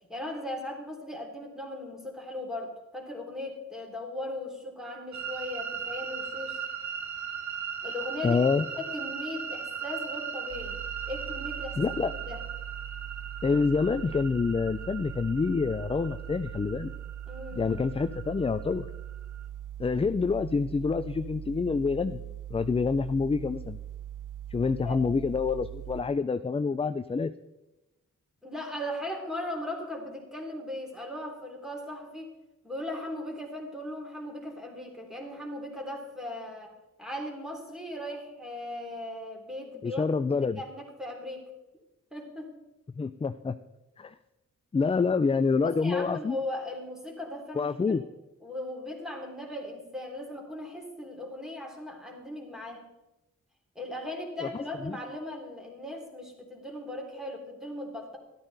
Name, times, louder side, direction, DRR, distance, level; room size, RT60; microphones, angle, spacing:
voice 1, 0.1-6.6 7.8-8.4 8.8-12.4 17.3-17.6 24.8-25.0 28.4-32.3 32.6-36.7 37.0-40.1 40.6-41.5 42.1-42.5 45.6-48.0 48.4-52.8 53.7-58.2, left 1 dB, ahead, 0 dB, 3.0 m, -38 dB
sound 1, 5.1-19.5, right 7 dB, 65° right, 1.2 m, -39 dB
voice 2, 8.2-8.6 11.8-12.1 13.4-16.9 17.5-18.9 19.8-22.2 22.5-23.8 24.5-27.3 39.8-40.6 43.0-43.6 44.0-44.1 44.7-46.4 47.6-48.0 54.4-54.5 54.8-54.9, left 4 dB, 20° left, 11 dB, 0.3 m, -27 dB
sound 2, 10.5-26.0, right 11 dB, 85° right, 0.6 m, -41 dB
13.0 x 12.5 x 4.0 m, 1.0 s
wide cardioid pair, 105°, 30 cm